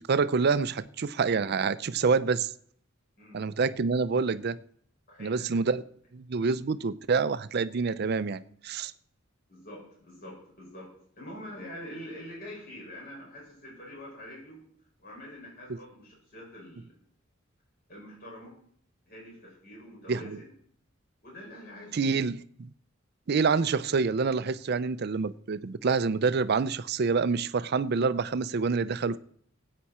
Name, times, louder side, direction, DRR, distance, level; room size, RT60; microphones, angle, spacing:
voice 1, 0.0-2.5 3.3-4.6 5.2-5.8 6.1-8.9 20.1-20.4 21.9-22.7 23.3-29.2, right 4 dB, 55° right, 0.5 m, -27 dB
voice 2, 5.1-5.6 9.5-10.9 11.2-14.6 15.0-16.9 17.9-18.5 19.1-20.5 21.2-22.0, left 1 dB, 50° left, 5.9 m, -45 dB
19.0 x 8.5 x 4.3 m
head